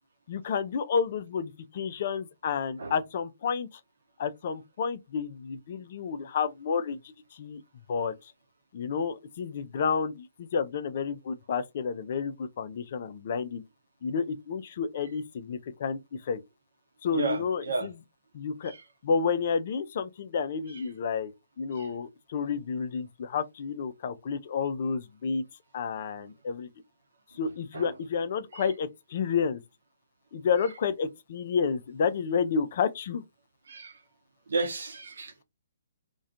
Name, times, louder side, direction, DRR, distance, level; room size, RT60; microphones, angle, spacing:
voice 1, 0.3-3.7 4.2-7.0 7.3-7.6 7.9-8.1 8.7-13.6 14.0-16.4 17.0-17.9 18.3-18.7 19.0-21.3 21.6-25.4 25.7-26.7 27.3-29.6 30.3-33.2, left 6 dB, 45° left, 0.3 m, -30 dB
voice 2, 17.1-17.9 18.6-18.8 20.7-20.8 21.7-21.9 27.7-27.9 28.5-28.7 33.7-34.0 34.5-35.4, right 3 dB, 65° right, 0.7 m, -33 dB
2.4 x 2.2 x 2.6 m
figure-of-eight pair, 130°, 0 cm